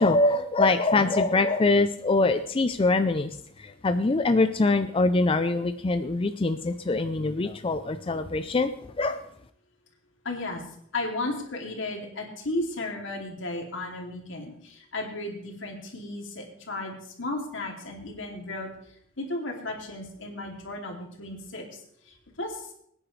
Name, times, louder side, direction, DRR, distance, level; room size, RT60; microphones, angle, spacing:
voice 1, 0.0-3.3 3.6-8.7 9.0-9.2, left 3 dB, 30° left, 9 dB, 0.5 m, -23 dB
voice 2, 10.2-10.6 10.9-18.7 19.2-21.6 22.1-22.7, left 2 dB, 75° left, 1 dB, 2.7 m, -34 dB
22.0 x 9.8 x 3.3 m, 0.69 s
head